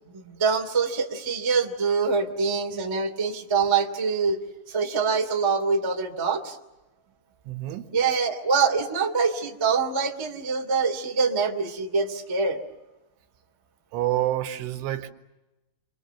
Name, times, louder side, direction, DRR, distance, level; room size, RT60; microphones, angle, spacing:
voice 1, 0.1-4.4 4.7-6.5 7.9-12.6, right 5 dB, 10° right, 1 dB, 1.4 m, -25 dB
voice 2, 7.5-7.9 13.9-15.1, right 13 dB, 80° right, 4 dB, 3.9 m, -28 dB
29.5 x 26.0 x 7.1 m, 1.0 s
omnidirectional pair, 5.6 m